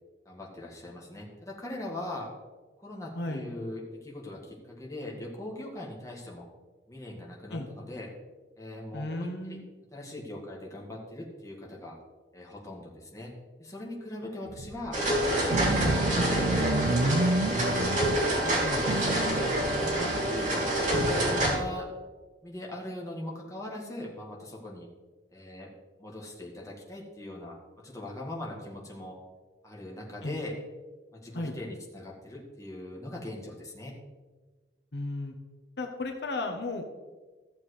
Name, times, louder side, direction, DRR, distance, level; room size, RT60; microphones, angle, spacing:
voice 1, 0.3-2.3 2.8-6.5 6.9-8.1 8.6-9.6 9.9-12.0 12.3-13.3 13.6-15.0 15.4-19.3 19.7-21.9 22.4-24.9 25.3-25.7 26.0-29.2 29.6-30.6 31.1-33.9, left 1 dB, 20° left, -3 dB, 1.8 m, -40 dB
voice 2, 3.1-3.4 7.5-7.7 8.9-9.7 15.7-16.0 18.6-18.8 21.4-21.6 30.2-30.4 31.3-31.5 34.9-35.3 35.8-36.9, left 2 dB, 70° left, 3 dB, 0.9 m, -34 dB
sound 1, 14.5-18.4 18.8-21.7, right 2 dB, 70° right, 0.5 m, -30 dB
sound 2, 14.9-21.5, right 1 dB, 45° right, 3.0 m, -27 dB
14.5 x 7.3 x 3.2 m, 1.3 s
head